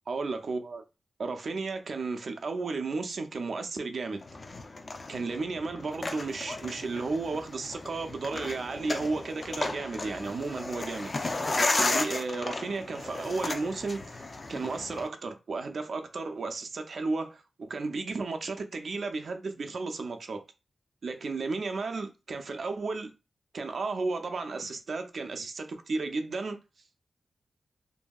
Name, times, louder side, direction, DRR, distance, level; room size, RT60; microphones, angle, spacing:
voice 1, 0.1-0.8 1.2-4.2 5.1-14.2 14.5-20.4 21.0-23.1 23.5-26.6, right 3 dB, 70° right, 0.5 m, -33 dB
sound 1, 4.2-15.1, left 2 dB, 45° left, 0.5 m, -34 dB
2.7 x 2.6 x 2.3 m
cardioid pair, 65°, 0 cm